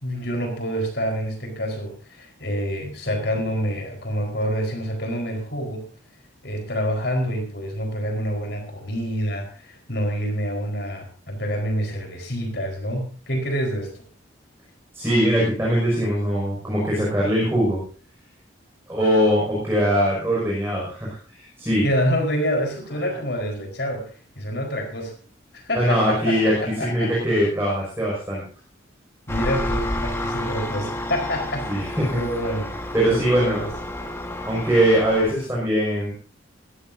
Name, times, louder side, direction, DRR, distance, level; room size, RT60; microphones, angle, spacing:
voice 1, 0.0-5.8 6.4-13.9 21.8-25.1 25.5-27.1 29.3-32.7 33.1-33.7, equal, 55° left, 3 dB, 4.8 m, -27 dB
voice 2, 14.9-17.8 18.9-21.8 25.7-26.5 26.8-28.4 31.7-32.2 32.9-33.6 34.4-36.1, equal, 10° right, -5 dB, 6.2 m, -21 dB
Engine, 29.3-35.3, left 1 dB, 15° left, 1.6 m, -30 dB
20.0 x 14.5 x 2.8 m, 0.38 s
head